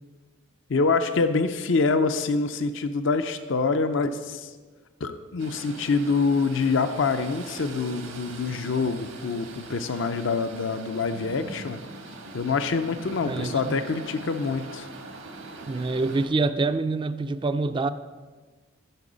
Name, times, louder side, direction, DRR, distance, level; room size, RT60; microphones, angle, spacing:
voice 1, 0.7-4.5 5.0-11.8 12.3-14.9, left 4 dB, 65° left, 0.5 m, -25 dB
sound 1, 5.4-16.3, right 2 dB, 90° right, 1.5 m, -42 dB
voice 2, 13.3-13.8 15.7-17.9, right 3 dB, 25° right, 0.3 m, -26 dB
13.5 x 6.1 x 5.0 m
head